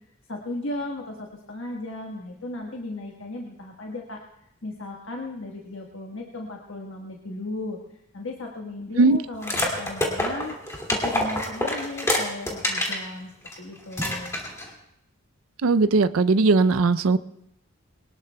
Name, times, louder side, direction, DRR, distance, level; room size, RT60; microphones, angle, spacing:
voice 1, 0.3-4.2 4.6-7.8 8.1-10.5 10.9-13.3 13.6-14.4, left 2 dB, 65° left, 0 dB, 1.4 m, -35 dB
sound 1, 9.4-13.0 13.5-13.6 13.9-14.7, left 1 dB, 15° left, 2.3 m, -26 dB
voice 2, 15.6-17.2, right 3 dB, 80° right, 13 dB, 0.5 m, -18 dB
22.5 x 19.0 x 2.3 m, 0.79 s
head